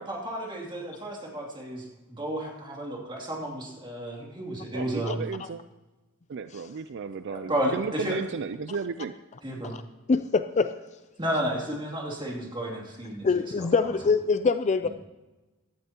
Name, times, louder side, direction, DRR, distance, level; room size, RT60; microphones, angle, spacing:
voice 1, 0.0-5.2 7.3-8.2 9.4-9.7 11.2-14.0, right 1 dB, 20° right, -2 dB, 2.7 m, -32 dB
voice 2, 4.7-5.6 6.3-9.1, right 5 dB, 55° right, 11 dB, 0.4 m, -34 dB
voice 3, 10.1-10.8 13.2-14.9, left 4 dB, 30° left, 11 dB, 0.4 m, -24 dB
16.5 x 12.0 x 2.9 m, 1.1 s
head